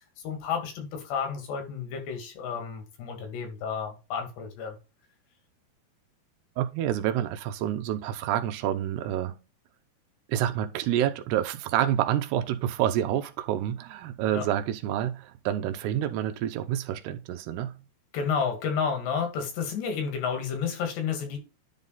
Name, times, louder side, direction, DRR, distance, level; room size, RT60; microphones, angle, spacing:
voice 1, 0.2-4.8 14.3-14.4 18.1-21.4, left 6 dB, 80° left, 4.3 m, -31 dB
voice 2, 6.6-9.4 10.3-17.7, right 11 dB, 80° right, 2.7 m, -28 dB
10.5 x 3.7 x 4.0 m
omnidirectional pair, 4.8 m